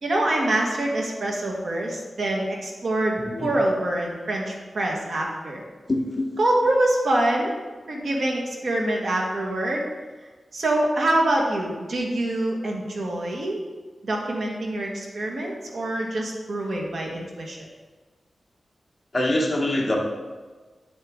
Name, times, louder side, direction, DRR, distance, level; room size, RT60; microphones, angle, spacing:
voice 1, 0.0-5.6 6.4-7.5 7.9-9.8 10.5-13.6 14.0-17.7, right 1 dB, 70° right, -1 dB, 1.5 m, -25 dB
voice 2, 5.9-6.3 19.1-20.0, left 1 dB, 25° left, -2 dB, 1.4 m, -24 dB
8.6 x 7.3 x 3.7 m, 1.4 s
wide cardioid pair, 140°, 0 cm